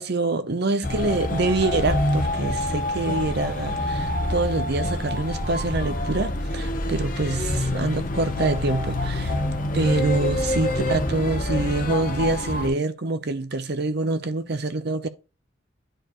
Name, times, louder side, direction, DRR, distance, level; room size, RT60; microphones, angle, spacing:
voice 1, 0.0-9.4 9.7-15.1, right 2 dB, 55° right, 0.7 m, -26 dB
sound 1, 0.8-12.7, left 1 dB, 45° left, 0.9 m, -26 dB
10.0 x 4.4 x 3.0 m
head